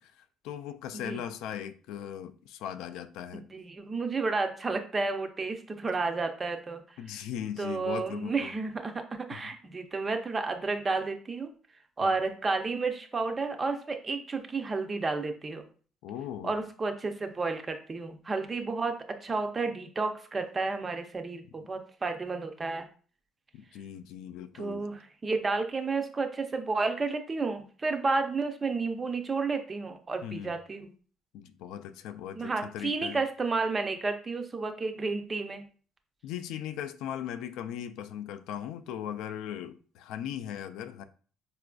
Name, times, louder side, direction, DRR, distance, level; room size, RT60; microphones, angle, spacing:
voice 1, 0.0-3.4 7.0-8.5 9.3-9.5 12.0-12.1 16.0-16.5 23.5-24.9 30.2-30.6 31.3-33.2 36.2-41.0, left 10 dB, 80° left, 0.3 m, -39 dB
voice 2, 3.3-6.8 7.1-7.2 7.6-11.5 12.0-15.7 16.4-19.0 19.2-22.9 24.5-30.9 32.4-35.6, right 3 dB, 20° right, 0.4 m, -31 dB
4.8 x 2.4 x 2.2 m
cardioid pair, 145°, 0 cm